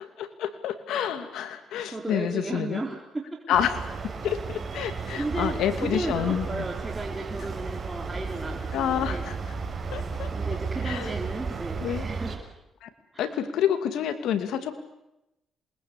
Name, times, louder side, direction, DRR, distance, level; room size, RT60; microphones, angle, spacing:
voice 1, 0.2-2.8 3.5-3.8 4.2-6.6 8.7-9.3 9.9-10.3 10.8-11.1 11.8-12.1 12.8-12.9 13.2-14.7, left 9 dB, 80° left, 8 dB, 2.5 m, -28 dB
voice 2, 1.5-3.4 4.8-9.3 10.3-12.4 13.1-13.4, right 2 dB, 20° right, 0 dB, 4.0 m, -34 dB
sound 1, 3.5-12.4, right 4 dB, 40° right, 6.5 m, -34 dB
27.5 x 21.0 x 8.4 m, 0.91 s
cardioid pair, 90°, 0 cm